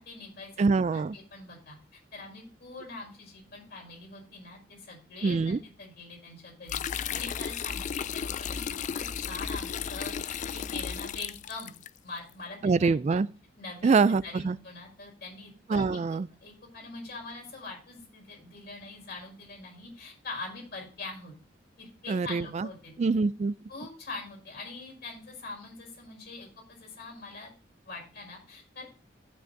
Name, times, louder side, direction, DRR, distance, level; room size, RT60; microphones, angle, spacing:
voice 1, 0.0-0.6 0.9-1.8 2.1-11.7 12.0-12.9 13.6-21.3 21.8-22.9 23.7-27.5 27.9-28.8, left 3 dB, 60° left, 5.4 m, -43 dB
voice 2, 0.6-1.1 5.2-5.6 12.6-13.3 13.8-14.6 15.7-16.3 22.1-22.7 23.0-23.5, right 4 dB, 35° right, 0.3 m, -25 dB
sound 1, 6.7-11.9, left 7 dB, 40° left, 0.3 m, -34 dB
17.0 x 6.0 x 2.6 m
head